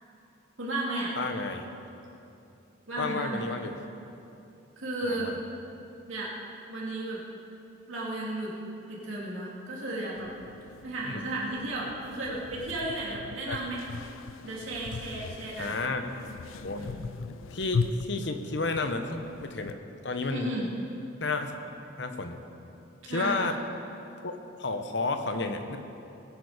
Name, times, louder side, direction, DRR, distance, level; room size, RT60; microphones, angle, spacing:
voice 1, 0.6-1.1 2.9-3.5 4.8-5.4 6.1-6.3 6.7-7.2 7.9-8.5 8.9-10.3 10.8-13.8 14.4-15.7 16.7-17.1 20.3-20.7 23.1-23.4, right 2 dB, 85° right, -5 dB, 2.5 m, -34 dB
voice 2, 1.2-1.7 3.0-3.7 5.0-5.4 11.1-11.2 13.5-13.6 15.6-16.1 16.6-16.8 17.5-19.8 20.0-20.5 21.2-21.6 22.0-22.4 23.1-23.6 24.2-25.8, left 3 dB, 60° left, 6 dB, 0.9 m, -31 dB
sound 1, 10.2-19.7, left 4 dB, 85° left, 0.4 m, -38 dB
19.0 x 8.2 x 5.0 m, 2.8 s
head